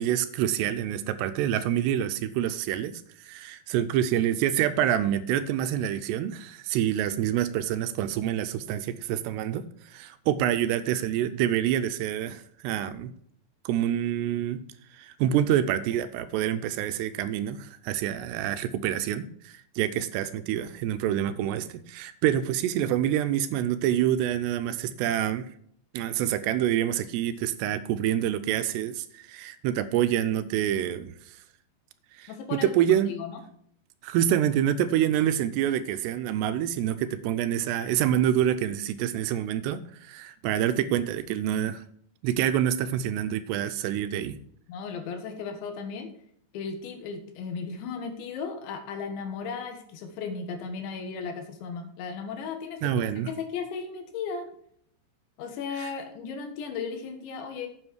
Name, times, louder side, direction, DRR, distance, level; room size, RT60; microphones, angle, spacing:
voice 1, 0.0-2.9 3.2-13.1 13.7-14.6 14.9-25.5 25.9-31.4 32.1-33.1 34.0-41.8 42.2-44.4 52.8-53.3 55.8-55.9, right 11 dB, 80° right, 11 dB, 2.6 m, -27 dB
voice 2, 32.3-32.7 33.1-33.4 44.7-46.1 46.5-53.1 53.4-54.5 55.4-57.7, left 5 dB, 85° left, 6 dB, 4.0 m, -35 dB
9.6 x 8.0 x 4.6 m, 0.64 s
omnidirectional pair, 5.1 m